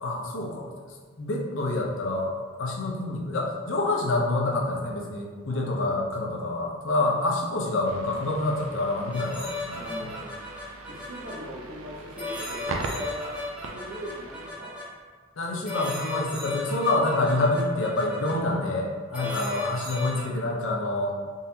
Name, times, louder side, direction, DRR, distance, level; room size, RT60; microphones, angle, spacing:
voice 1, 0.0-0.7 1.2-2.3 2.6-10.1 15.4-18.9 19.1-21.1, left 2 dB, 70° left, -1 dB, 0.6 m, -27 dB
voice 2, 5.5-6.0 6.9-7.1 9.7-10.5 10.9-13.4 13.7-14.7 18.3-18.7 19.1-19.3, equal, 70° right, -5 dB, 0.9 m, -40 dB
sound 1, 7.8-14.5, right 2 dB, 85° right, 0.4 m, -40 dB
sound 2, 9.1-11.3 12.2-14.8 15.6-18.3 19.1-20.2, left 2 dB, 5° right, 0.7 m, -35 dB
3.9 x 2.6 x 2.7 m, 1.5 s
head